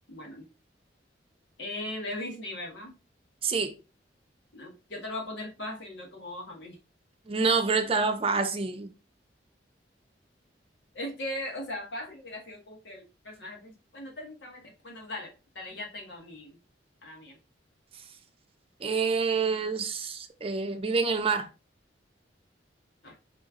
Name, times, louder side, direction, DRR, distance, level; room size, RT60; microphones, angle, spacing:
voice 1, 0.1-0.4 1.6-3.0 4.5-6.8 10.9-16.6 17.0-17.4 23.0-23.1, left 1 dB, 80° left, 1.7 m, -39 dB
voice 2, 3.4-3.7 7.3-8.9 18.8-21.5, right 4 dB, 35° right, 0.6 m, -27 dB
4.4 x 3.1 x 3.6 m
head